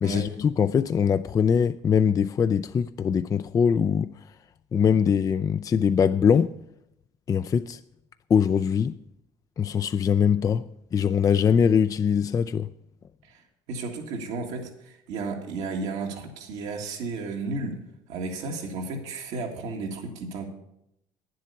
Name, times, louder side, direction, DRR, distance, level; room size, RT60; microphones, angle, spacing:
voice 1, 0.0-4.1 4.7-6.5 7.3-7.8 8.3-8.9 9.6-10.6 10.9-12.7, left 7 dB, 30° left, 0.4 m, -22 dB
voice 2, 13.7-17.8 18.1-20.5, right 3 dB, 75° right, 1.8 m, -33 dB
9.8 x 7.7 x 6.9 m
supercardioid pair, 80°, 11 cm